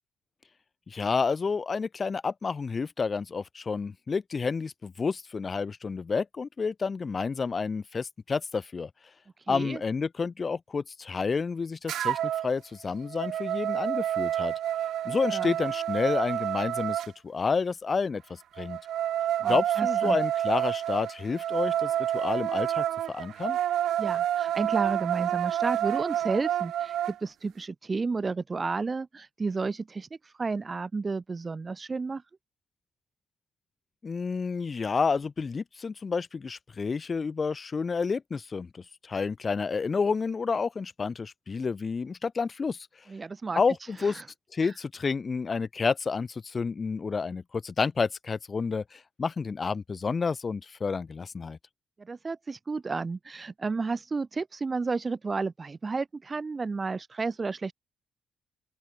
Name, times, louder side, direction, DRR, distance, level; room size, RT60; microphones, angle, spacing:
voice 1, 0.9-8.9 9.5-12.2 12.4-14.5 15.0-18.8 19.5-23.6 34.0-42.9 43.6-44.2 44.5-51.6, left 5 dB, 35° left, 2.7 m, -30 dB
voice 2, 9.5-9.8 15.1-15.5 19.4-20.2 24.0-30.1 30.4-32.2 43.1-43.6 44.0-44.1 44.6-44.7 52.0-57.7, right 4 dB, 25° right, 1.2 m, -32 dB
sound 1, 11.9-12.5 12.9-17.1 18.6-27.2, right 11 dB, 75° right, 3.7 m, -29 dB
open air
cardioid pair, 120°, 0 cm